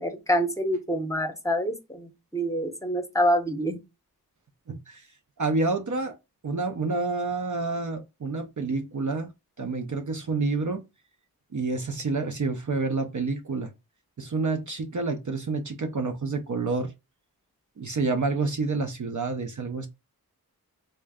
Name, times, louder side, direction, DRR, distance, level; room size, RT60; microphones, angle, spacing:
voice 1, 0.0-3.8, equal, 10° left, 0.8 m, -26 dB
voice 2, 4.7-5.0 5.4-6.1 6.4-9.3 9.6-10.8 11.5-13.7 14.2-16.9 17.8-19.9, right 3 dB, 50° right, 0.6 m, -28 dB
3.6 x 2.2 x 3.4 m
wide cardioid pair, 60°, 38 cm